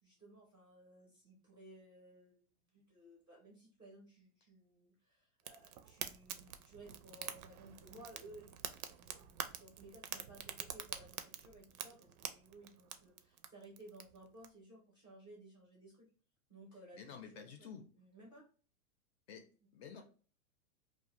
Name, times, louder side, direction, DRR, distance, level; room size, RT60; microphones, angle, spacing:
voice 1, 0.0-2.4 2.7-8.5 8.9-16.1 16.5-17.7 18.0-18.4, right 2 dB, 10° right, -3 dB, 0.4 m, -58 dB
Fire, 5.4-14.5, right 9 dB, 75° right, 0.5 m, -47 dB
voice 2, 16.9-17.9 19.3-20.0, left 7 dB, 45° left, 6 dB, 0.4 m, -51 dB
2.5 x 2.1 x 2.8 m, 0.40 s
supercardioid pair, 145°, 43 cm